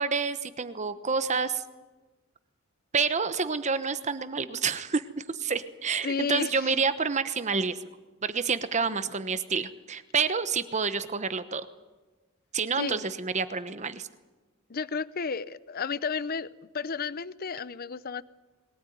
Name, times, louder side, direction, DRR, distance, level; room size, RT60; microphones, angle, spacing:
voice 1, 0.0-1.6 2.9-7.8 8.2-11.7 12.5-14.1, right 5 dB, 35° right, 12 dB, 1.0 m, -28 dB
voice 2, 6.0-6.7 12.8-13.1 14.7-18.2, left 5 dB, 45° left, 17 dB, 0.6 m, -32 dB
21.5 x 18.5 x 9.4 m, 1.2 s
head